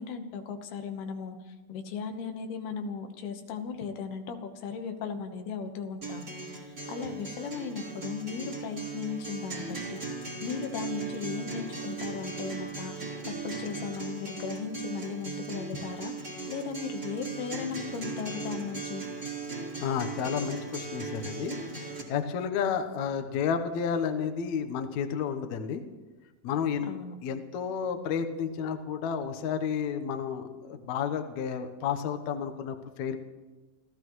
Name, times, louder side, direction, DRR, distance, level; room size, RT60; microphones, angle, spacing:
voice 1, 0.0-6.3 6.6-19.0 26.8-27.2, left 6 dB, 90° left, 5 dB, 3.3 m, -37 dB
Acoustic guitar, 6.0-22.0, right 4 dB, 25° right, 3.1 m, -38 dB
voice 2, 19.8-21.6 22.1-25.8 26.4-26.9 27.2-33.2, left 7 dB, 65° left, 7 dB, 1.9 m, -31 dB
28.0 x 15.0 x 3.2 m, 1.2 s
omnidirectional pair, 4.4 m